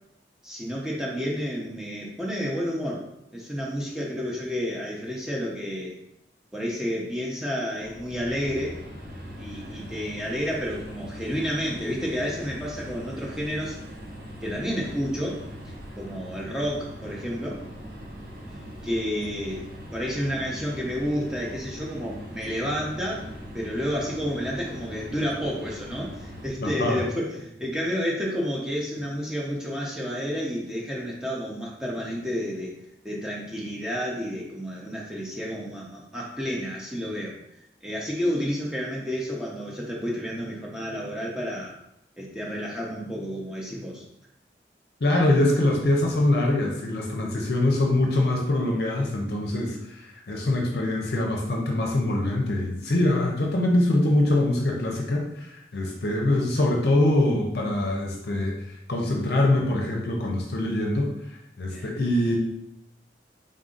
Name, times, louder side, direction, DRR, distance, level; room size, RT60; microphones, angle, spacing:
voice 1, 0.4-3.1 3.3-6.0 6.5-8.8 9.4-13.8 14.4-15.4 16.0-17.6 18.8-23.3 23.5-32.7 33.0-37.4 37.8-41.7 42.2-44.0 61.7-62.0, equal, 5° right, -4 dB, 0.5 m, -30 dB
sound 1, 7.8-26.5, equal, 55° right, 0.9 m, -41 dB
voice 2, 26.6-27.0 45.0-61.1 61.6-62.4, left 1 dB, 65° left, 0 dB, 0.6 m, -24 dB
3.7 x 2.6 x 3.7 m, 0.80 s
head